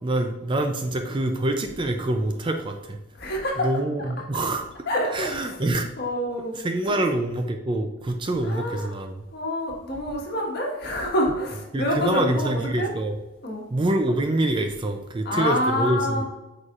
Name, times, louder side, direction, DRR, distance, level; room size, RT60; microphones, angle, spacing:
voice 1, 0.0-3.0 3.6-4.7 5.1-5.9 6.5-9.2 11.7-13.2 13.7-16.2, right 1 dB, 20° right, 5 dB, 0.4 m, -25 dB
voice 2, 3.2-3.7 4.9-5.4 6.0-6.6 6.9-7.0 8.4-8.9 9.3-12.9 13.4-13.6 15.2-16.2, left 1 dB, 45° left, -1 dB, 1.4 m, -27 dB
8.4 x 4.9 x 2.4 m, 1.1 s
head